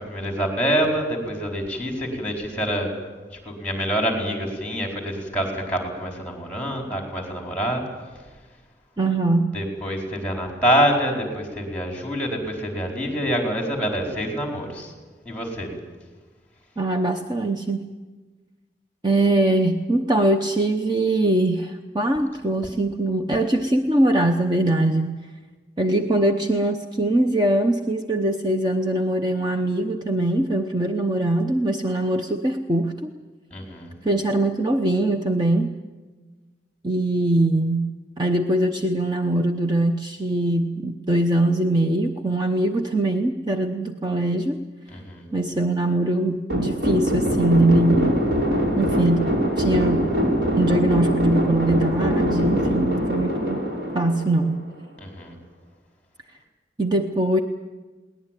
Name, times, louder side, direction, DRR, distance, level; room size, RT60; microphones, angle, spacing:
voice 1, 0.0-2.9 3.4-7.8 9.5-14.9 15.2-15.7 33.5-33.9 44.9-45.3 55.0-55.4, equal, 10° left, 1 dB, 4.5 m, -26 dB
voice 2, 9.0-9.6 16.8-17.9 19.0-25.2 25.8-33.1 34.0-35.8 36.8-37.9 38.2-44.6 45.3-48.2 48.7-50.1 50.6-53.7 53.9-54.6 56.8-57.4, right 1 dB, 25° right, 5 dB, 0.8 m, -22 dB
sound 1, 46.5-54.8, equal, 80° right, 5.4 m, -23 dB
21.5 x 19.0 x 9.2 m, 1.3 s
head